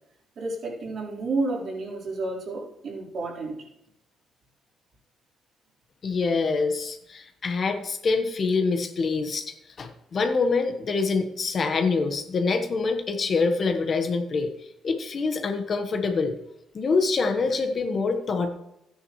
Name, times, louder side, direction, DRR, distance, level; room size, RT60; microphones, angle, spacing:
voice 1, 0.4-3.6, right 3 dB, 60° right, -4 dB, 3.9 m, -30 dB
voice 2, 6.0-14.5 14.8-16.3 16.7-18.5, left 4 dB, 45° left, 6 dB, 1.2 m, -25 dB
13.5 x 9.6 x 3.1 m, 0.84 s
cardioid pair, 90°, 0 cm